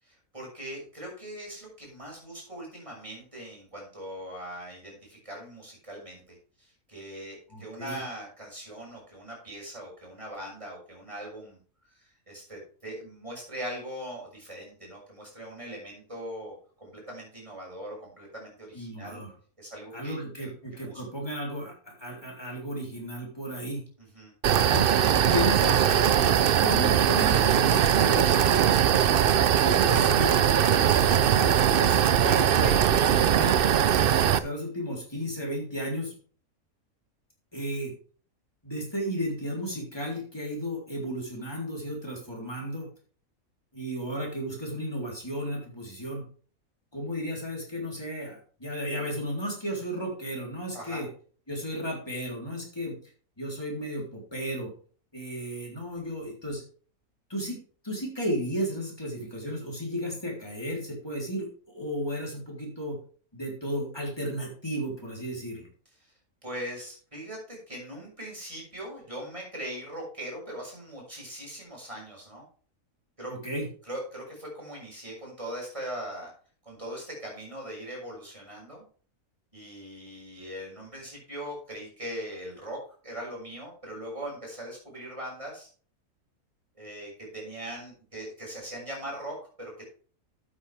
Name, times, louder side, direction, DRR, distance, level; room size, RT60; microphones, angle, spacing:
voice 1, 0.0-11.6 11.8-19.2 19.6-21.0 24.0-24.3 50.7-51.0 66.0-66.1 66.4-72.4 73.2-73.3 73.8-76.3 76.6-78.8 79.5-85.7 86.7-89.9, right 1 dB, 20° right, -2 dB, 6.2 m, -40 dB
voice 2, 7.5-8.0 18.7-19.3 19.9-23.8 24.7-24.9 25.2-28.7 29.3-33.6 34.3-36.1 37.5-37.9 38.6-42.9 43.7-46.3 46.9-51.1 51.5-53.0 53.4-54.7 55.1-56.6 57.3-57.6 57.8-63.0 63.3-65.7 73.3-73.7, equal, 15° left, -2 dB, 3.7 m, -34 dB
sound 1, 24.4-34.4, right 9 dB, 60° right, 0.6 m, -21 dB
12.5 x 8.7 x 3.4 m, 0.42 s
omnidirectional pair, 1.5 m